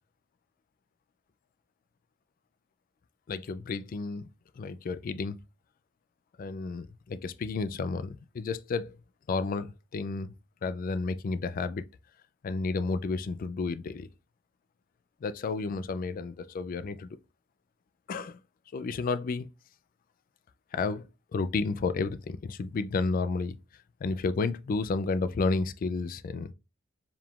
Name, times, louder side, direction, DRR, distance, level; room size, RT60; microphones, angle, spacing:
voice 1, 3.3-4.3 4.6-5.4 6.4-9.0 9.3-10.3 10.6-11.8 12.4-14.1 15.2-17.2 18.1-18.4 18.7-19.5 20.7-23.6 24.0-26.5, left 4 dB, 45° left, 0.3 m, -31 dB
4.7 x 3.6 x 2.3 m
head